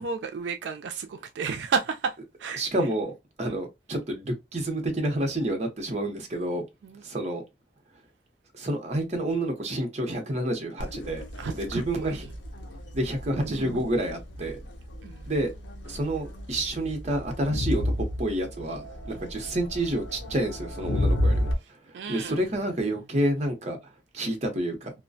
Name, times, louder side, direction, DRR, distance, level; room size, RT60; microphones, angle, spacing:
voice 1, 0.0-2.1 2.4-2.6 3.4-3.6 6.8-7.0 11.4-12.3 13.4-13.8 15.0-15.2 19.0-19.3 21.9-22.4, right 5 dB, 75° right, 0.4 m, -32 dB
voice 2, 2.6-3.1 3.4-6.6 7.0-7.4 8.6-11.2 11.6-12.2 12.9-14.6 15.3-15.5 15.9-17.8 18.2-21.5 21.9-23.8 24.1-24.9, right 1 dB, 40° right, 0.7 m, -29 dB
Crowd, 10.8-21.5, left 1 dB, 85° left, 0.6 m, -32 dB
2.3 x 2.1 x 2.5 m
head